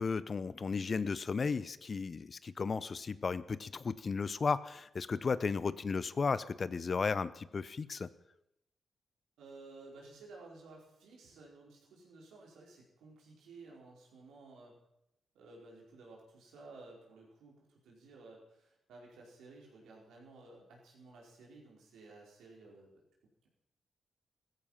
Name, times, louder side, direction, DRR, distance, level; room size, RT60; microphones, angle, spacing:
voice 1, 0.0-8.1, left 5 dB, 50° left, 16 dB, 0.8 m, -34 dB
voice 2, 9.4-14.7 15.3-23.0, right 3 dB, 80° right, -2 dB, 4.8 m, -55 dB
15.5 x 14.5 x 5.8 m, 0.82 s
hypercardioid pair, 40°, 0 cm